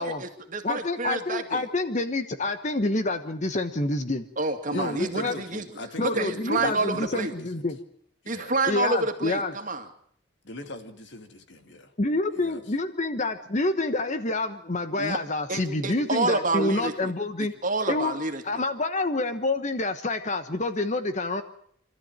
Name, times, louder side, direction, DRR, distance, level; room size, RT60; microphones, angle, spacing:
voice 1, 0.0-1.7 4.4-5.7 6.0-7.3 8.3-9.9 15.0-15.2 15.5-17.1 17.6-18.4, right 3 dB, 40° right, 5 dB, 2.3 m, -28 dB
voice 2, 0.6-4.2 4.7-5.4 6.0-7.8 8.7-9.5 12.0-17.5 17.9-18.2 18.4-21.4, left 2 dB, 40° left, 10 dB, 1.1 m, -27 dB
voice 3, 4.7-7.7 8.2-8.6 10.4-11.9 12.3-12.7, left 1 dB, 65° left, 7 dB, 2.3 m, -41 dB
26.0 x 13.5 x 8.9 m, 0.66 s
head